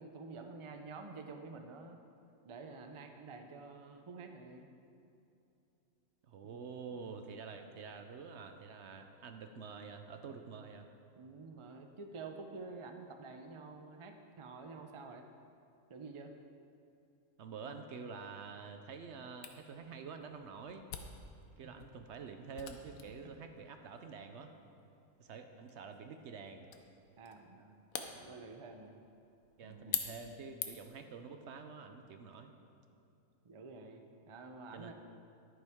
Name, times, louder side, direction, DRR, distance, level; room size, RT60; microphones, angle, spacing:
voice 1, 0.0-2.0 2.4-4.7 6.4-6.6 11.1-15.3 15.9-16.3 21.6-21.9 27.2-27.7 28.2-28.9 29.6-30.1 33.4-34.9, right 4 dB, 45° right, 5 dB, 0.4 m, -49 dB
voice 2, 6.2-10.9 17.4-20.8 21.6-24.5 25.2-26.7 28.1-28.5 29.6-32.5 34.7-34.9, right 5 dB, 65° right, 6 dB, 0.8 m, -48 dB
Camera, 19.4-31.0, left 8 dB, 85° left, 1.2 m, -46 dB
11.0 x 9.7 x 3.6 m, 2.7 s
omnidirectional pair, 1.4 m